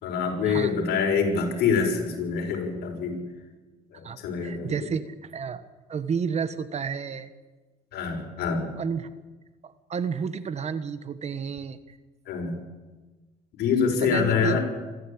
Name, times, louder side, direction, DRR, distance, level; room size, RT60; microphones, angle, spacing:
voice 1, 0.0-3.2 3.9-4.9 7.9-8.7 12.3-12.6 13.5-14.6, left 6 dB, 70° left, 2 dB, 6.0 m, -25 dB
voice 2, 4.0-5.6 5.9-7.3 8.8-9.1 9.6-12.0 14.0-14.6, right 6 dB, 40° right, 13 dB, 1.4 m, -31 dB
27.0 x 13.5 x 8.8 m, 1.2 s
cardioid pair, 110°, 17 cm